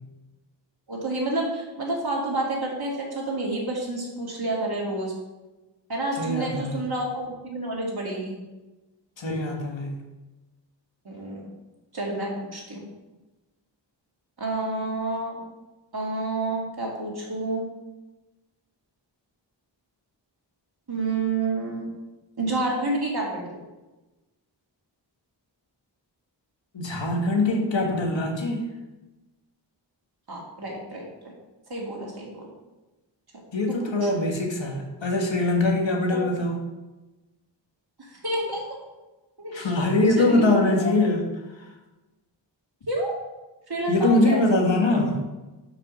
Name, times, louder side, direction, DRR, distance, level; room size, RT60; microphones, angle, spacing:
voice 1, 0.9-5.1 5.9-8.4 11.1-11.4 11.9-12.8 14.4-15.4 15.9-17.6 20.9-21.9 22.4-23.6 30.3-31.3 31.7-32.5 33.7-34.1 36.1-36.2 38.0-38.6 39.4-39.7 40.2-40.9 42.9-43.2 43.7-44.5, right 2 dB, 55° right, -2 dB, 2.1 m, -29 dB
voice 2, 6.2-6.8 9.2-9.9 26.7-28.7 33.5-36.6 39.5-41.2 43.9-45.2, left 2 dB, 85° left, 1 dB, 1.4 m, -23 dB
6.0 x 4.8 x 5.9 m, 1.1 s
wide cardioid pair, 75°, 44 cm